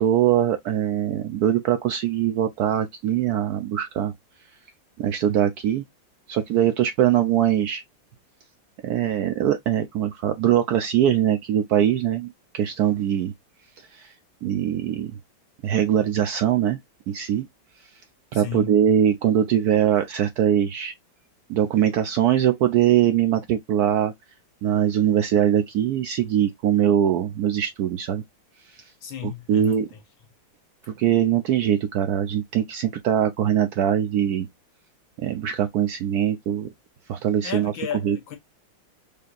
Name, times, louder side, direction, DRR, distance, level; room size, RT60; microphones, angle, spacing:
voice 1, 0.0-4.1 5.0-5.8 6.3-7.8 8.8-13.3 13.9-14.1 14.4-15.1 15.6-16.8 17.1-17.5 18.3-20.9 21.5-24.1 24.6-28.2 29.2-29.9 30.8-34.5 35.2-36.7 37.1-37.7 38.0-38.2, right 10 dB, 75° right, 0.9 m, -22 dB
voice 2, 18.3-18.8 29.0-30.0 37.4-38.4, left 8 dB, 80° left, 1.9 m, -34 dB
5.0 x 2.8 x 2.4 m
omnidirectional pair, 2.1 m